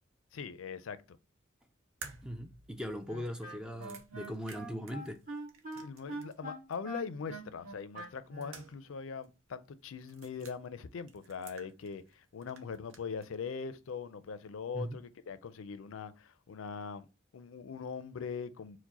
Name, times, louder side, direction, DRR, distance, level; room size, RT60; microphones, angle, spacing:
voice 1, 0.3-1.2 5.7-17.1 17.3-18.8, left 5 dB, 80° left, 0.4 m, -41 dB
sound 1, 2.0-6.4 6.7-6.8 8.0-9.0 9.2-9.3 10.0-10.6 11.1-12.1 12.4-13.3, right 5 dB, 75° right, 0.7 m, -53 dB
voice 2, 2.2-5.2 14.7-15.0, equal, 5° right, 0.3 m, -40 dB
Wind instrument woodwind instrument, 3.1-8.7, right 2 dB, 40° right, 1.4 m, -44 dB
4.6 x 2.1 x 4.0 m
head